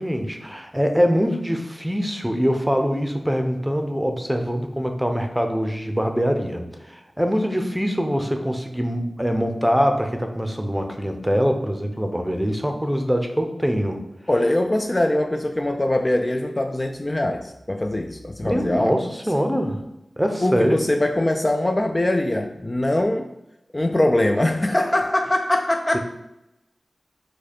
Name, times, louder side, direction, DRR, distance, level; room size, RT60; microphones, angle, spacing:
voice 1, 0.0-14.0 18.4-19.8 20.2-20.8 25.9-26.0, equal, 5° right, 5 dB, 0.7 m, -23 dB
voice 2, 14.3-18.9 20.4-23.3 23.7-26.0, left 1 dB, 30° left, 4 dB, 0.4 m, -22 dB
4.8 x 2.3 x 4.3 m, 0.90 s
cardioid pair, 40°, 0 cm